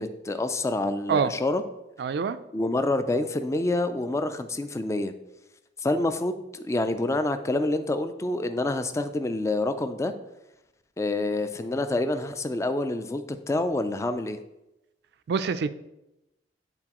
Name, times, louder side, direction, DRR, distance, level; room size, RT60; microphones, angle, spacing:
voice 1, 0.0-1.6 2.5-5.1 5.8-10.1 11.0-14.4, left 2 dB, 15° left, 9 dB, 0.3 m, -27 dB
voice 2, 2.0-2.4 15.3-15.7, right 6 dB, 60° right, 12 dB, 0.3 m, -25 dB
9.7 x 4.0 x 2.9 m, 0.93 s
head